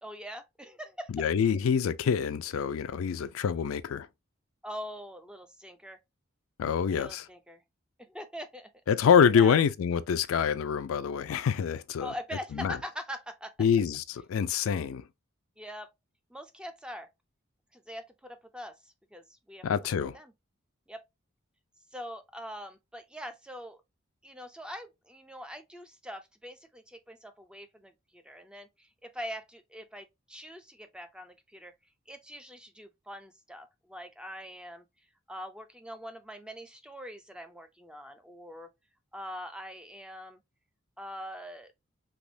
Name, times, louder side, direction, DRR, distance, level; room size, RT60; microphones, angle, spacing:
voice 1, 0.0-1.1 4.6-6.0 6.9-7.6 8.0-8.7 9.3-9.6 12.0-13.5 15.6-15.9 16.3-17.1 17.7-19.7 20.1-20.3 20.9-21.0 21.9-23.8 24.2-31.7 32.1-34.8 35.3-38.7 39.1-40.4 41.0-41.7, equal, 5° right, 0.4 m, -43 dB
voice 2, 1.1-4.1 6.6-7.2 8.9-12.1 12.6-12.8 13.6-15.0 19.6-20.2, left 7 dB, 75° left, 0.3 m, -26 dB
3.4 x 2.9 x 2.5 m
head